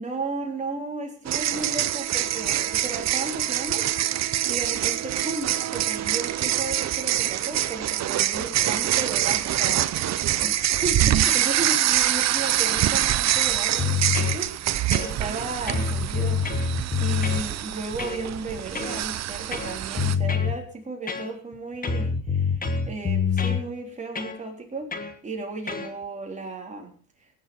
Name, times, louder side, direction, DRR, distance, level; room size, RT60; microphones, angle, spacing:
voice 1, 0.0-3.9 4.5-16.7 17.0-24.9 25.2-26.9, right 3 dB, 15° right, 0 dB, 3.7 m, -35 dB
sound 1, 1.3-20.1, right 12 dB, 40° right, 0.7 m, -25 dB
sound 2, 13.8-14.4 14.9-15.4 15.7-17.5 18.0-18.2 18.8-19.0 19.5-20.6 21.1-21.5 21.8-23.6 24.2-24.4 24.9-25.1 25.7-25.9, left 6 dB, 20° left, 1.4 m, -26 dB
18.0 x 7.4 x 5.5 m, 0.42 s
cardioid pair, 130°, 42 cm